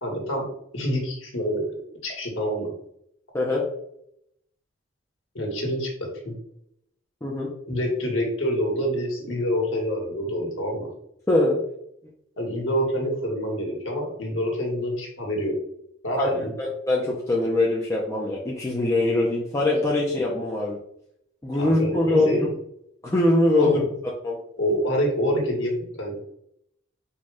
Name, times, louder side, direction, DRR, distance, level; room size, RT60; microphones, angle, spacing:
voice 1, 0.0-0.4 0.7-1.7 2.0-2.7 5.3-5.9 6.2-6.3 7.7-10.9 12.4-15.5 16.0-16.5 21.6-22.5 23.6-23.8 24.6-26.1, equal, 70° left, -1 dB, 1.6 m, -26 dB
voice 2, 11.3-11.6 16.2-16.3 16.6-20.8 21.4-22.5 23.0-23.8 24.2-24.4, left 2 dB, 15° left, -4 dB, 0.6 m, -22 dB
4.3 x 2.3 x 4.7 m, 0.74 s
head